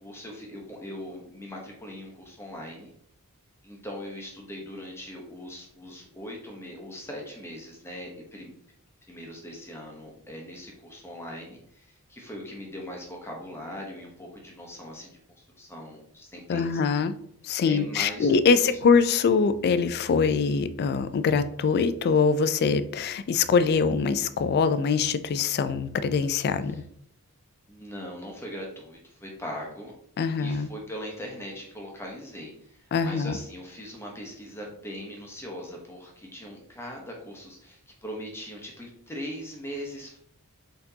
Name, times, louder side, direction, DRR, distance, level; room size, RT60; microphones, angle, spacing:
voice 1, 0.0-2.9 3.6-8.5 9.1-16.8 17.6-18.3 18.6-18.8 27.7-29.9 30.3-40.2, equal, 10° left, -1 dB, 0.9 m, -40 dB
voice 2, 16.5-17.1 17.4-26.8 30.2-30.7 32.9-33.4, left 5 dB, 45° left, 12 dB, 0.3 m, -23 dB
4.2 x 4.0 x 2.8 m, 0.68 s
head